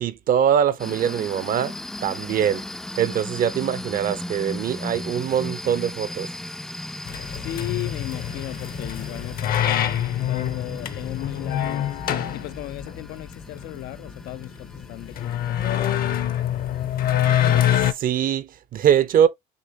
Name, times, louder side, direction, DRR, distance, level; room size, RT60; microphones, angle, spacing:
voice 1, 0.0-1.8 2.0-2.6 3.0-6.3 17.9-19.3, right 9 dB, 55° right, 0.6 m, -22 dB
sound 1, 0.8-17.1, left 1 dB, 5° left, 0.3 m, -37 dB
sound 2, 7.1-17.9, left 11 dB, 60° left, 0.8 m, -25 dB
voice 2, 7.3-9.9 10.3-12.0 12.3-15.8, left 15 dB, 80° left, 0.4 m, -36 dB
6.6 x 2.9 x 2.7 m
cardioid pair, 110°, 17 cm